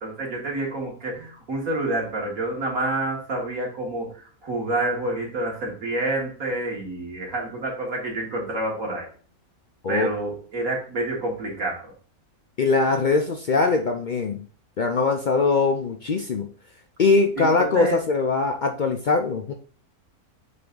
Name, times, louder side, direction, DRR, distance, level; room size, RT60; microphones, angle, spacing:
voice 1, 0.0-4.1 4.4-9.1 9.9-11.9 17.4-18.0, right 2 dB, 70° right, -2 dB, 2.4 m, -28 dB
voice 2, 12.6-14.4 14.8-16.5 17.0-19.5, left 4 dB, 70° left, 4 dB, 0.4 m, -22 dB
7.6 x 3.4 x 3.8 m, 0.42 s
omnidirectional pair, 1.6 m